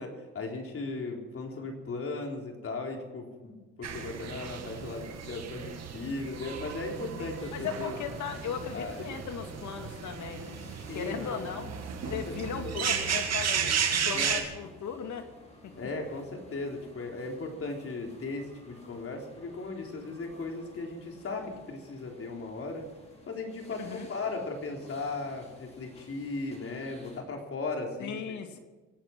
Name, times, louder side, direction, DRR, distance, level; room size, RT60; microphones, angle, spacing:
voice 1, 0.0-8.0 8.3-8.4 8.7-9.1 10.9-11.6 12.0-12.9 14.1-14.4 15.8-22.9 23.3-28.2, left 3 dB, 50° left, 2 dB, 3.9 m, -37 dB
sound 1, 3.8-14.4, right 7 dB, 60° right, 2.4 m, -34 dB
voice 2, 7.2-10.7 10.9-11.7 12.1-15.3 15.6-15.8 23.8-24.1 28.0-28.6, left 7 dB, 70° left, 6 dB, 2.3 m, -37 dB
sound 2, 7.4-27.2, left 1 dB, 20° left, 4.7 m, -54 dB
25.5 x 9.1 x 6.1 m, 1.3 s
cardioid pair, 90°, 30 cm